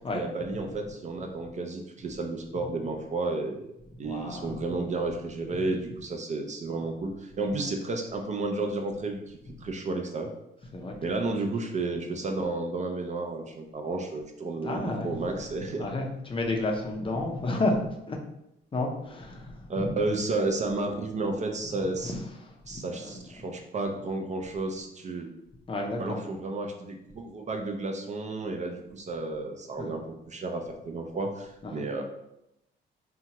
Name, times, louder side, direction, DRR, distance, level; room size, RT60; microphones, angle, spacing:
voice 1, 0.1-3.7 4.0-10.3 11.0-15.9 19.7-22.1 22.7-25.3 26.0-32.0, right 2 dB, 35° right, 3 dB, 0.4 m, -32 dB
voice 2, 4.0-4.6 7.6-7.7 10.7-11.4 14.6-15.4 15.8-18.2 18.7-19.9 22.0-23.2 25.7-26.2 29.8-29.9 31.6-31.8, left 2 dB, 25° left, 1 dB, 0.5 m, -32 dB
2.8 x 2.2 x 2.8 m, 0.84 s
cardioid pair, 90°, 20 cm